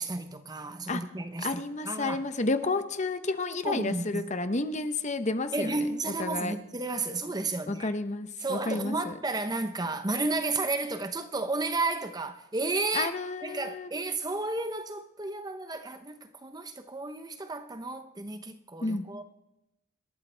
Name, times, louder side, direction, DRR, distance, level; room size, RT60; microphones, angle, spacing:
voice 1, 0.0-2.2 3.6-4.3 5.5-7.9 8.4-13.1 13.4-19.2, right 3 dB, 20° right, 0.7 m, -32 dB
voice 2, 1.4-6.6 7.7-9.1 12.9-13.9 18.8-19.1, left 3 dB, 35° left, 0.8 m, -31 dB
26.5 x 13.0 x 3.4 m
head